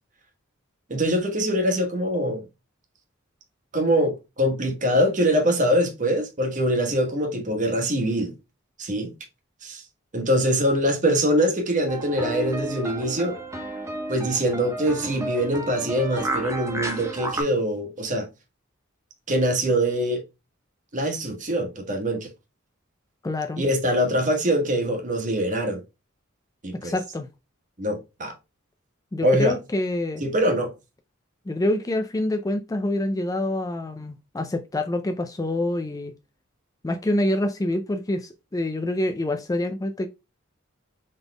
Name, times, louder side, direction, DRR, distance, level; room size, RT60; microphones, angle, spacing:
voice 1, 0.9-2.4 3.7-8.3 8.8-9.1 9.6-9.8 10.1-13.4 14.1-18.3 19.3-20.2 20.9-22.3 23.6-25.8 26.6-27.0 27.8-28.3 29.2-29.5 30.2-30.7, equal, 40° right, 1.2 m, -23 dB
sound 1, 11.9-17.4, right 1 dB, 15° right, 0.8 m, -32 dB
voice 2, 23.2-23.6 26.8-27.3 29.1-30.2 31.5-36.1 36.8-40.1, left 1 dB, 15° left, 0.4 m, -26 dB
4.0 x 3.5 x 3.3 m
head